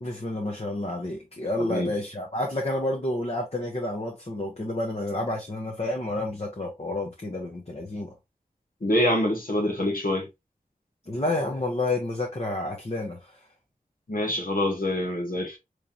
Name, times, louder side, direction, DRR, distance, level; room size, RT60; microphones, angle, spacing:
voice 1, 0.0-8.1 11.1-13.2 14.3-14.4, left 2 dB, 45° left, 1.0 m, -30 dB
voice 2, 1.6-1.9 8.8-10.3 14.1-15.6, left 1 dB, 70° left, 1.3 m, -25 dB
3.8 x 3.3 x 2.7 m
wide cardioid pair, 45°, 15 cm